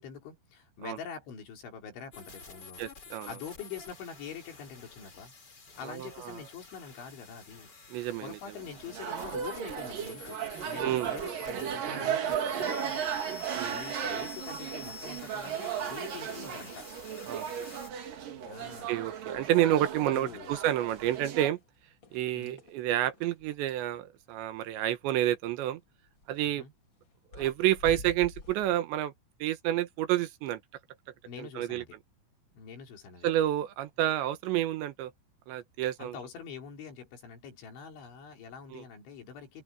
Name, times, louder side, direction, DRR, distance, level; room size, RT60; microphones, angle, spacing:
voice 1, 0.0-2.9 3.3-5.3 5.8-16.9 18.4-19.0 20.1-20.6 22.3-22.6 26.4-26.7 31.2-32.0 32.6-33.3 36.0-39.6, left 7 dB, 75° left, 6.4 m, -45 dB
sound 1, 2.1-17.9, left 5 dB, 25° left, 2.7 m, -49 dB
voice 2, 2.8-3.3 5.8-6.4 7.9-8.4 10.8-11.1 13.5-13.8 17.3-17.8 18.9-21.6 22.1-25.8 26.3-26.6 27.3-29.1 29.4-30.6 31.4-31.8 33.2-35.1 35.5-36.2 38.7-38.8, right 13 dB, 75° right, 3.3 m, -29 dB
sound 2, 8.6-21.5, right 8 dB, 55° right, 3.3 m, -35 dB
sound 3, 20.4-20.6 21.0-21.6 22.0-23.9 26.1-26.4 27.0-27.1 27.3-28.8, left 3 dB, 45° left, 1.5 m, -46 dB
omnidirectional pair, 5.4 m